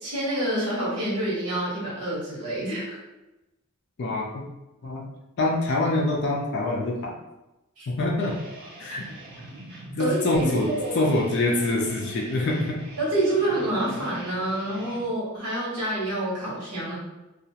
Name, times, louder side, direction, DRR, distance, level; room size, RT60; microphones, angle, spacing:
voice 1, 0.0-3.0 7.8-7.9 8.9-9.0 10.0-11.1 13.0-17.0, right 1 dB, 85° right, -6 dB, 1.0 m, -27 dB
voice 2, 4.0-4.4 4.8-5.1 5.4-7.1 7.9-8.3 8.8-9.1 10.0-10.7 10.9-12.8, left 2 dB, 50° left, -2 dB, 0.4 m, -25 dB
sound 1, 8.2-15.1, right 1 dB, 50° right, 0.6 m, -43 dB
2.3 x 2.0 x 2.7 m, 0.99 s
head